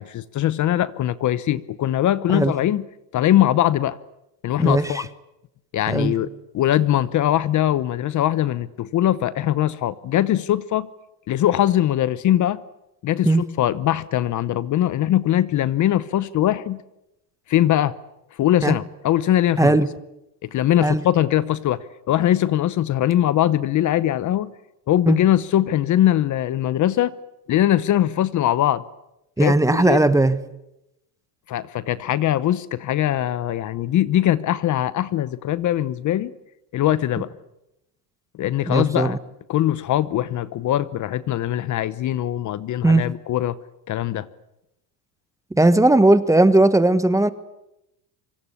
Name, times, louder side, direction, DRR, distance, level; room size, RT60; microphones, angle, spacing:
voice 1, 0.0-2.9 3.1-4.0 4.4-5.1 5.7-6.3 6.5-10.9 11.3-12.6 13.0-16.8 17.5-17.9 18.4-19.8 20.4-24.5 24.9-27.1 27.5-28.8 29.4-30.1 31.5-36.3 36.7-37.3 38.4-39.2 39.5-43.6 43.9-44.3, left 12 dB, 40° left, 0.9 m, -21 dB
voice 2, 29.4-30.4 38.7-39.2 42.8-43.0 45.6-47.3, right 2 dB, 5° right, 1.1 m, -17 dB
25.5 x 25.0 x 8.5 m
supercardioid pair, 125°, 45 cm